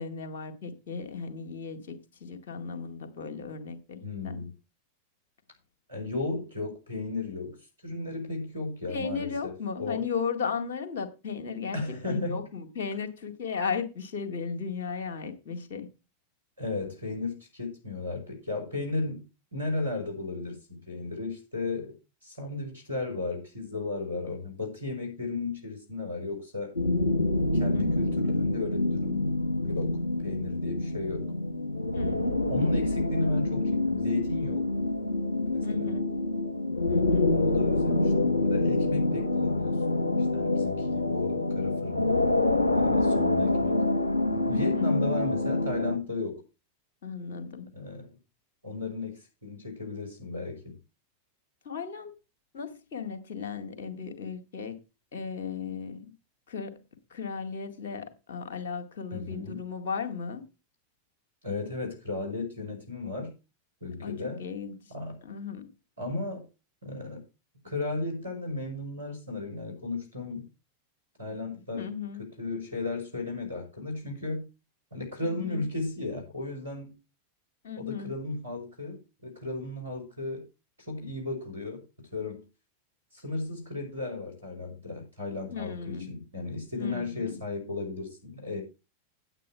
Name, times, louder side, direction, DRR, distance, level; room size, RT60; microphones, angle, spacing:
voice 1, 0.0-4.4 8.9-15.9 27.7-27.9 31.9-32.7 35.6-36.1 36.9-37.4 44.5-44.9 47.0-47.7 51.6-52.1 52.5-54.8 55.1-56.1 56.5-56.8 57.1-60.4 64.0-64.9 65.2-65.7 71.7-72.2 75.2-75.7 77.6-78.1 85.5-86.1 86.8-87.4, left 6 dB, 60° left, 2.1 m, -36 dB
voice 2, 4.0-4.5 5.9-7.6 7.8-10.0 11.7-12.4 16.6-19.2 19.5-26.7 27.5-29.3 29.6-31.3 32.5-34.7 35.5-35.9 37.3-40.0 40.3-42.1 42.7-43.8 44.3-46.4 47.7-48.1 48.6-50.8 59.1-59.6 61.4-63.3 63.8-64.4 64.9-65.2 66.0-66.4 66.8-67.2 67.6-70.5 71.2-71.9 72.2-74.5 74.9-76.9 77.8-80.4 80.9-81.8 82.1-82.4 83.1-88.6, left 3 dB, 85° right, 4.8 m, -34 dB
sound 1, 26.7-46.0, left 2 dB, 85° left, 1.0 m, -26 dB
9.1 x 9.1 x 4.5 m
figure-of-eight pair, 90°, 0 cm